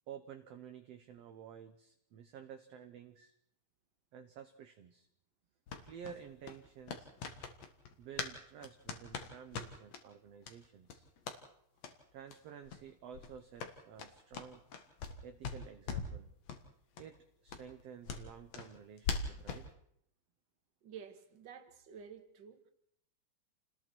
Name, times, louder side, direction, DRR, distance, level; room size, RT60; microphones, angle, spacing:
voice 1, 0.1-3.3 4.1-5.1 5.8-7.1 8.0-11.1 12.1-14.6 15.2-16.3 17.0-19.7, right 8 dB, 65° right, 7 dB, 1.8 m, -52 dB
sound 1, 5.7-8.4 8.6-10.0 10.4-10.6 10.9-11.4 11.8-12.0 12.3-12.4 12.6-12.8 13.1-15.2 15.4-16.2 16.5-16.6 17.0-17.1 17.5-19.7, left 5 dB, 60° left, 2.7 m, -42 dB
voice 2, 20.8-22.6, right 7 dB, 40° right, 7 dB, 2.0 m, -51 dB
29.0 x 20.0 x 4.6 m, 0.72 s
omnidirectional pair, 3.6 m